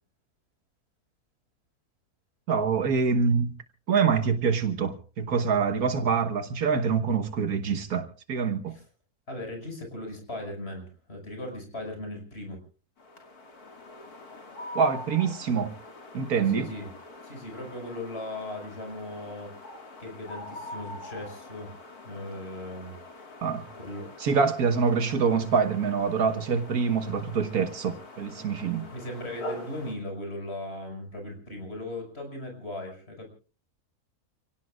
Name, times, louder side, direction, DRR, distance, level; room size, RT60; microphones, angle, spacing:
voice 1, 2.5-3.5 3.9-8.7 14.8-15.7 16.1-16.7 23.4-23.6 24.2-28.9, right 5 dB, 75° right, 1.7 m, -25 dB
voice 2, 9.3-12.6 16.5-16.9 17.2-19.5 20.0-21.7 22.0-23.4 23.8-24.0 28.9-33.3, left 1 dB, 40° left, 6.0 m, -38 dB
sound 1, 13.0-29.9, left 1 dB, 80° left, 3.0 m, -44 dB
29.5 x 17.0 x 2.4 m
omnidirectional pair, 1.6 m